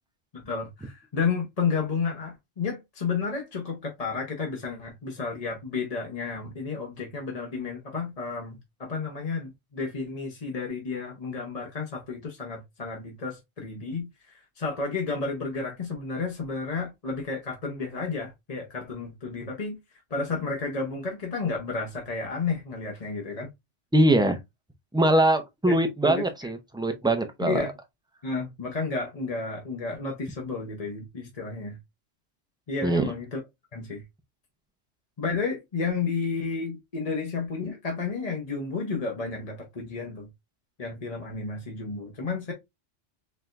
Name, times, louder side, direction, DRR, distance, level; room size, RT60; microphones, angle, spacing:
voice 1, 0.3-19.8 20.1-23.5 25.7-25.8 26.0-26.2 27.4-27.7 28.2-31.8 32.7-33.4 33.7-34.0 35.2-40.3 40.8-42.5, left 4 dB, 35° left, 0.8 m, -32 dB
voice 2, 23.9-24.4 24.9-27.7 32.8-33.1, right 1 dB, 5° right, 0.4 m, -22 dB
4.3 x 3.3 x 2.5 m
omnidirectional pair, 1.3 m